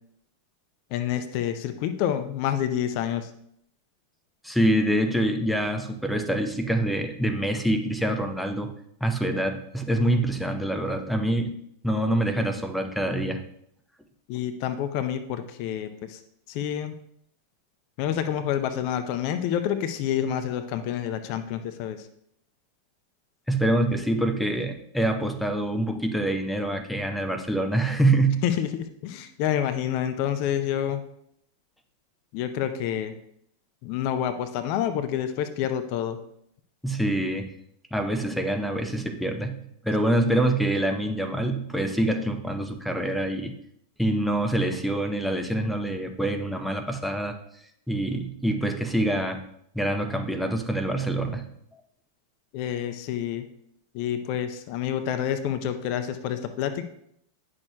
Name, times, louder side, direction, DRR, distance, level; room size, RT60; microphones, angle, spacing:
voice 1, 0.9-3.3 14.3-16.2 16.5-16.9 18.0-22.0 28.4-31.0 32.3-33.1 33.8-36.2 52.5-53.5 53.9-56.9, left 10 dB, 45° left, 9 dB, 0.5 m, -28 dB
voice 2, 4.4-8.7 9.0-11.5 11.8-13.4 23.5-28.4 36.8-37.5 37.9-39.6 39.8-43.5 44.0-47.4 47.9-49.4 49.7-51.5, right 1 dB, ahead, 6 dB, 0.6 m, -25 dB
9.6 x 6.2 x 2.2 m, 0.71 s
figure-of-eight pair, 90°, 0 cm